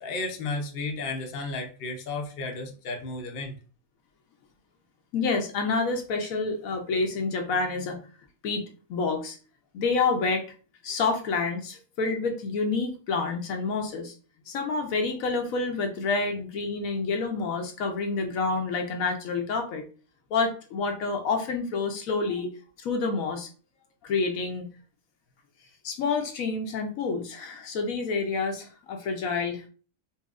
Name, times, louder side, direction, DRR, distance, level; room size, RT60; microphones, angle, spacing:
voice 1, 0.0-3.6, left 3 dB, 50° left, 2 dB, 0.8 m, -33 dB
voice 2, 5.1-8.0 8.4-8.6 8.9-9.4 9.7-10.4 10.8-14.1 14.5-19.8 20.3-22.5 22.8-23.5 24.0-24.7 25.8-29.7, left 4 dB, 75° left, 4 dB, 1.1 m, -28 dB
4.0 x 2.7 x 2.4 m, 0.38 s
omnidirectional pair, 1.5 m